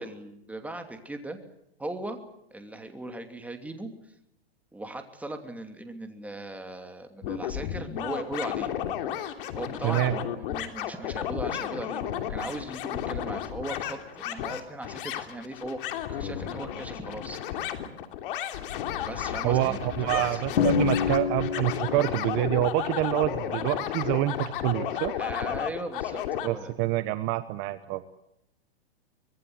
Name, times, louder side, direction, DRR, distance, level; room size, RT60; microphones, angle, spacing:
voice 1, 0.0-1.4 1.8-2.2 2.5-3.9 4.7-8.7 9.5-15.8 16.1-17.4 19.1-19.8 20.1-20.4 25.2-26.7, right 2 dB, 5° right, 6 dB, 2.8 m, -38 dB
sound 1, 7.2-26.5, left 10 dB, 60° left, 3.1 m, -33 dB
voice 2, 9.8-10.1 19.4-25.1 26.4-28.0, right 16 dB, 35° right, 12 dB, 1.1 m, -27 dB
Drum, 20.6-22.3, left 7 dB, 80° left, 3.3 m, -27 dB
24.5 x 20.5 x 7.9 m, 0.79 s
hypercardioid pair, 125°, 31 cm